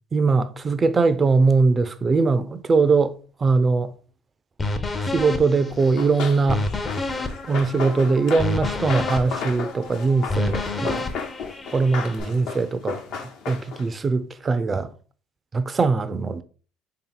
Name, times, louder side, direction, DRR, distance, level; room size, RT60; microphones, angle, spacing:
voice 1, 0.1-3.1 3.4-3.9 5.0-6.7 7.5-11.1 11.7-13.0 13.5-14.9 15.5-16.4, right 4 dB, 30° right, 0.4 m, -21 dB
sound 1, 4.6-12.2, left 2 dB, 25° left, 0.6 m, -29 dB
Run, 5.8-14.0, left 5 dB, 70° left, 0.9 m, -34 dB
3.5 x 2.8 x 3.8 m
supercardioid pair, 90°, 0 cm